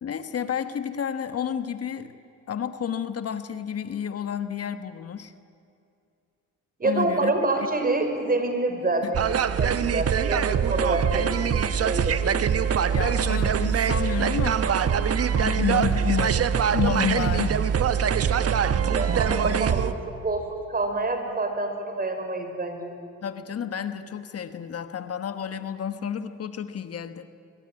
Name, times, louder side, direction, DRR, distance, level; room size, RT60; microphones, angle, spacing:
voice 1, 0.0-2.1 2.5-5.3 6.8-7.3 9.0-9.1 12.9-15.0 15.3-17.6 18.6-18.7 19.3-19.4 23.2-27.3, left 8 dB, 50° left, 10 dB, 1.3 m, -30 dB
voice 2, 6.8-12.5 18.3-22.9, right 2 dB, 30° right, 6 dB, 5.1 m, -28 dB
sound 1, 9.1-19.9, right 7 dB, 50° right, 1.3 m, -23 dB
24.0 x 23.0 x 9.8 m, 2.6 s
cardioid pair, 90°, 30 cm